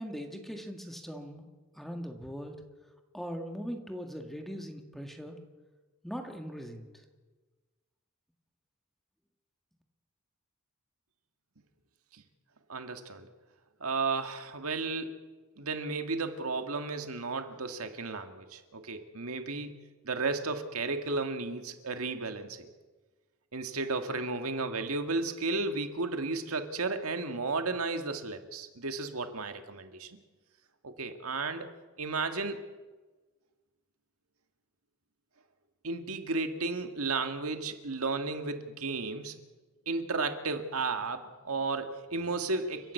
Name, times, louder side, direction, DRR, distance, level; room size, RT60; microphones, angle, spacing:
voice 1, 0.0-1.5 1.8-2.5 3.1-5.4 6.0-6.9, equal, ahead, 4 dB, 1.8 m, -40 dB
voice 2, 12.7-13.3 13.8-15.3 15.6-22.7 23.5-30.2 30.8-31.7 32.0-32.6 35.8-39.4 39.9-42.9, right 3 dB, 80° right, 7 dB, 1.8 m, -33 dB
30.0 x 11.0 x 8.1 m, 1.3 s
head